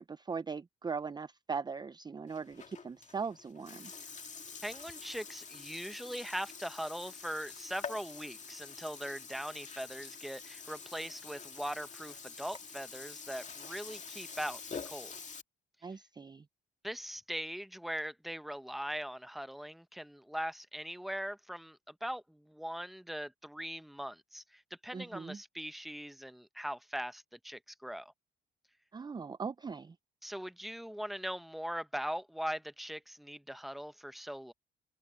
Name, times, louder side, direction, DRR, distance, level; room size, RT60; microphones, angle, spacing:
voice 1, 0.0-3.9 15.8-16.4 24.9-25.4 28.9-30.0, right 5 dB, 20° right, 0.5 m, -40 dB
Burping eructation, 2.3-15.4, left 5 dB, 35° left, 2.2 m, -47 dB
voice 2, 4.6-15.1 16.8-28.1 30.2-34.5, equal, ahead, 0.9 m, -41 dB
cardioid pair, 90°, 20 cm